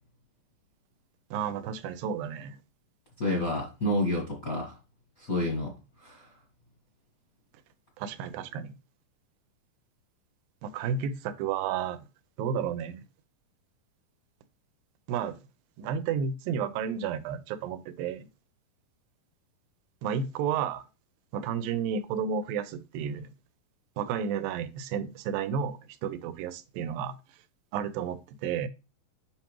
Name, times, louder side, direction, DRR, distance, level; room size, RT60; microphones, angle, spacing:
voice 1, 1.3-2.6 8.0-8.7 10.6-12.0 12.4-13.0 15.1-15.4 15.8-18.3 20.0-20.9 21.3-23.3 24.0-27.1 27.7-28.7, right 7 dB, 85° right, 2.5 m, -32 dB
voice 2, 3.2-4.8 5.2-5.7 6.0-6.3, left 1 dB, 45° left, 1.1 m, -29 dB
7.7 x 5.8 x 3.0 m
omnidirectional pair, 4.0 m